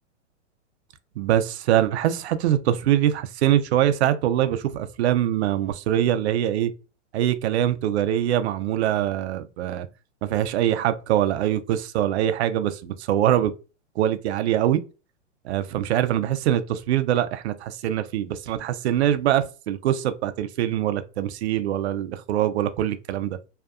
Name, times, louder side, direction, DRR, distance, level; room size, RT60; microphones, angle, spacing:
voice 1, 1.2-6.7 7.1-9.9 10.2-13.5 14.0-14.8 15.4-23.4, right 11 dB, 60° right, 0.5 m, -23 dB
2.7 x 2.2 x 2.3 m
hypercardioid pair, 145°, 37 cm